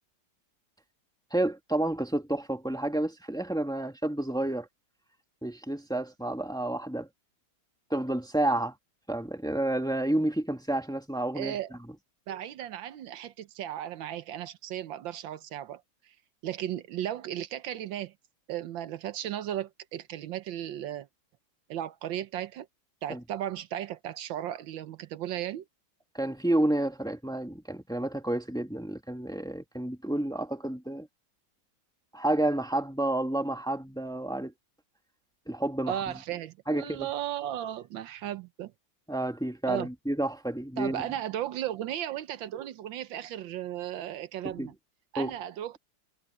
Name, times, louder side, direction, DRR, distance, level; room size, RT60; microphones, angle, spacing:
voice 1, 1.3-4.7 5.4-7.1 7.9-8.7 9.1-11.6 23.1-23.2 26.1-31.1 32.1-34.5 35.5-36.1 36.7-37.1 39.1-41.0 44.6-44.7 45.2-45.3, right 1 dB, ahead, 1.8 m, -30 dB
voice 2, 11.3-11.7 12.3-16.1 16.4-18.1 18.5-21.1 21.7-22.7 23.0-25.6 35.9-38.7 39.7-39.9 40.8-44.7 45.1-45.8, right 11 dB, 80° right, 1.5 m, -35 dB
omnidirectional pair, 2.1 m